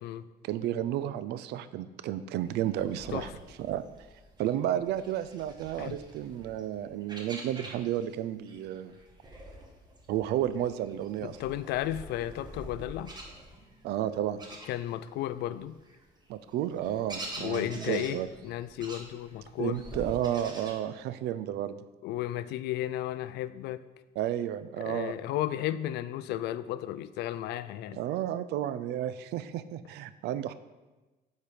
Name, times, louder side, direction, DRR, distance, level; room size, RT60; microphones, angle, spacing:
voice 1, 0.4-3.3 3.6-3.8 4.4-9.0 10.1-11.4 13.8-14.4 16.3-18.3 19.6-21.8 24.2-25.1 28.0-30.5, right 11 dB, 80° right, 14 dB, 0.5 m, -32 dB
sound 1, 2.5-8.2 8.5-15.2 15.6-20.7, right 1 dB, 25° right, 1.4 m, -46 dB
voice 2, 11.2-13.2 14.7-15.8 17.4-19.8 22.0-23.8 24.8-28.0, left 13 dB, 80° left, 15 dB, 0.4 m, -34 dB
8.3 x 4.5 x 5.1 m, 1.2 s
cardioid pair, 110°, 17 cm